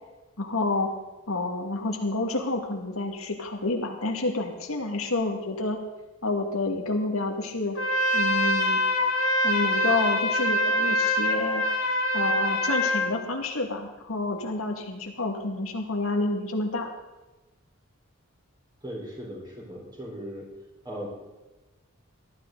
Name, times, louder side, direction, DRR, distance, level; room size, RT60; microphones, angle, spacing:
voice 1, 0.4-0.9 1.3-5.8 6.2-7.8 8.1-8.8 9.4-11.6 12.1-16.9, left 2 dB, 90° left, 2 dB, 2.2 m, -29 dB
Trumpet, 7.7-13.2, left 1 dB, 70° left, 1.8 m, -24 dB
voice 2, 18.8-20.4 20.8-21.1, equal, 20° right, -2 dB, 4.5 m, -38 dB
19.0 x 12.5 x 4.0 m, 1.1 s
head